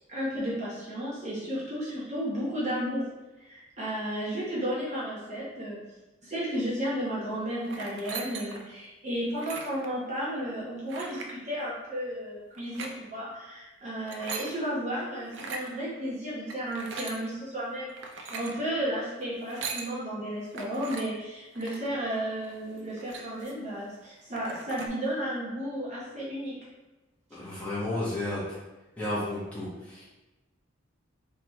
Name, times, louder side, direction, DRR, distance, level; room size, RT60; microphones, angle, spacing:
voice 1, 0.1-3.1 3.4-5.8 6.2-17.9 18.3-26.6, equal, 35° right, -7 dB, 1.0 m, -33 dB
sound 1, 7.6-8.7 9.3-9.9 10.9-11.3 12.5-12.9 13.9-14.5 15.3-15.7 16.5-17.2 17.9-18.6 19.4-19.9 20.5-21.0 21.5-21.9 22.4-22.5 22.8-23.6 24.0-24.1 24.3-24.9, right 4 dB, 55° right, 0.5 m, -39 dB
voice 2, 27.3-28.4 29.0-30.1, left 1 dB, 5° left, -10 dB, 1.3 m, -32 dB
4.0 x 3.4 x 3.0 m, 1.1 s
head